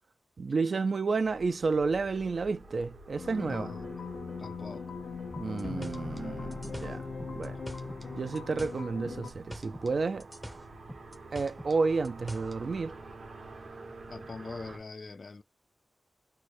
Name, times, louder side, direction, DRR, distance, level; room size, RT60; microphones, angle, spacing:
voice 1, 0.4-3.7 5.4-7.0 7.3-7.6 8.1-10.3 11.3-13.0, right 4 dB, 65° right, 0.3 m, -31 dB
sound 1, 1.1-14.8, right 2 dB, 90° right, 1.1 m, -49 dB
sound 2, 3.2-9.3, left 4 dB, 70° left, 0.7 m, -40 dB
voice 2, 3.4-4.0 4.4-4.9 14.1-15.4, left 3 dB, 55° left, 0.4 m, -43 dB
sound 3, 5.4-8.1 8.4-9.9 10.2-12.6, equal, ahead, 0.6 m, -45 dB
3.1 x 2.1 x 4.1 m
wide cardioid pair, 115°, 0 cm